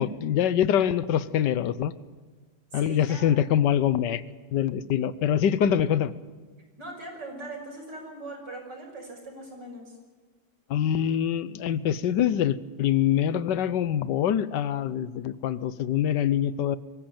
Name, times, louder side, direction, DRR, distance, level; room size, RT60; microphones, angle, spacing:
voice 1, 0.0-1.9 2.7-4.2 4.5-6.1 10.7-16.8, left 9 dB, 80° left, 16 dB, 1.4 m, -24 dB
voice 2, 2.7-3.3 6.8-10.0, right 2 dB, 80° right, 1 dB, 6.6 m, -40 dB
23.5 x 15.0 x 8.9 m, 1.4 s
omnidirectional pair, 1.9 m